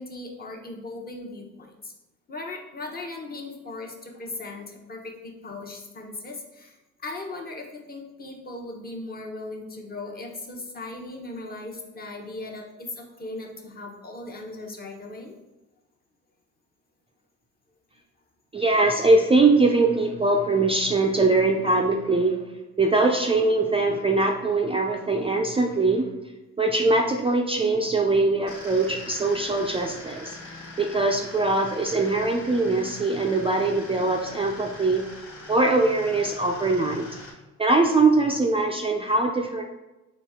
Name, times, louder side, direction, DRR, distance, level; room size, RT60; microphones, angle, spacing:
voice 1, 0.0-1.9 2.3-6.8 7.0-15.4, left 2 dB, 30° left, 1 dB, 0.9 m, -38 dB
voice 2, 18.5-22.4 22.8-26.1 26.6-30.4 30.8-35.1 35.5-37.1 37.6-39.6, right 3 dB, 20° right, 1 dB, 0.4 m, -22 dB
sound 1, 28.5-37.3, left 2 dB, 50° left, 1.5 m, -43 dB
4.2 x 3.2 x 3.5 m, 1.0 s
cardioid pair, 90°, 30 cm